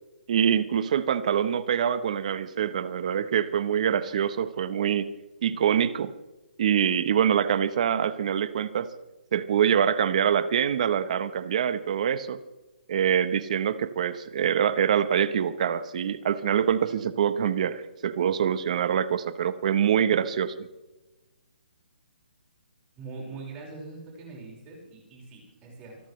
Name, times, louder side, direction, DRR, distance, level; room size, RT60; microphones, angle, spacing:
voice 1, 0.3-5.1 5.4-6.1 6.6-8.9 9.3-12.4 12.9-20.5, right 8 dB, 40° right, 14 dB, 0.9 m, -25 dB
voice 2, 23.0-26.0, right 3 dB, 15° right, -2 dB, 5.1 m, -42 dB
26.5 x 12.0 x 3.2 m, 1.0 s
hypercardioid pair, 165°, 6 cm